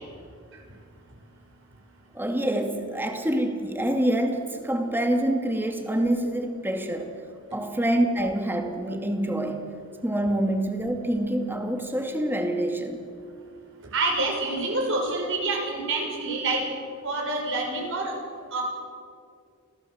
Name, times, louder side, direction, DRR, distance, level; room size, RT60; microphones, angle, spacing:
voice 1, 2.1-7.1 7.5-9.7 10.0-13.0, right 1 dB, 10° right, 4 dB, 2.3 m, -26 dB
voice 2, 13.9-16.6 17.0-18.1 18.5-18.6, right 2 dB, 65° right, 0 dB, 6.5 m, -27 dB
28.5 x 17.0 x 8.0 m, 2.3 s
head